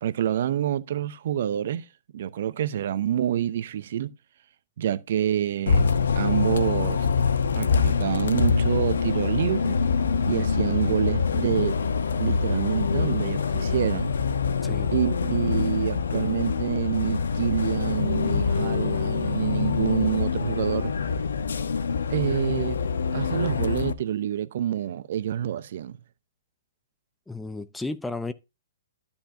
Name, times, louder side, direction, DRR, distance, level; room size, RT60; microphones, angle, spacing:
voice 1, 0.0-1.9 2.1-4.1 4.8-7.1 7.5-9.8 10.3-11.8 12.2-14.1 14.9-20.9 22.1-22.8 23.1-26.0, right 10 dB, 55° right, 0.7 m, -27 dB
Bus, 5.7-23.9, left 5 dB, 70° left, 1.0 m, -25 dB
voice 2, 27.3-28.3, left 3 dB, 5° left, 0.7 m, -33 dB
12.5 x 7.2 x 2.6 m
figure-of-eight pair, 125°, 0 cm